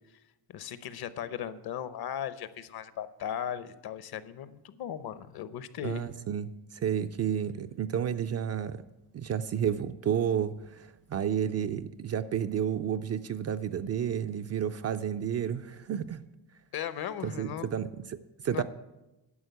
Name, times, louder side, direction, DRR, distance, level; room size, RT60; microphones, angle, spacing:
voice 1, 0.5-6.0 16.7-17.7 18.5-18.6, left 9 dB, 55° left, 14 dB, 0.8 m, -37 dB
voice 2, 5.8-8.8 9.1-16.2 17.2-18.2 18.4-18.6, right 8 dB, 35° right, 10 dB, 0.4 m, -31 dB
11.0 x 6.4 x 9.3 m, 0.98 s
cardioid pair, 135°, 45 cm